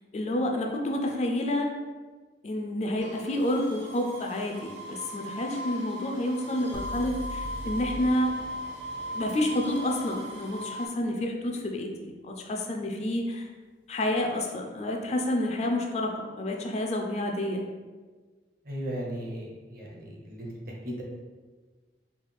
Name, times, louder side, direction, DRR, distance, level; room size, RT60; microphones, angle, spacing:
voice 1, 0.1-1.7 2.4-8.3 9.1-13.5 13.9-17.6, left 1 dB, 35° left, 2 dB, 0.4 m, -29 dB
sound 1, 3.0-10.9, equal, 80° right, 0.9 m, -38 dB
sound 2, 6.7-10.7, right 1 dB, 90° left, 0.5 m, -41 dB
voice 2, 18.6-20.5 20.8-21.0, right 1 dB, 50° right, -2 dB, 0.8 m, -36 dB
4.6 x 2.3 x 3.3 m, 1.4 s
head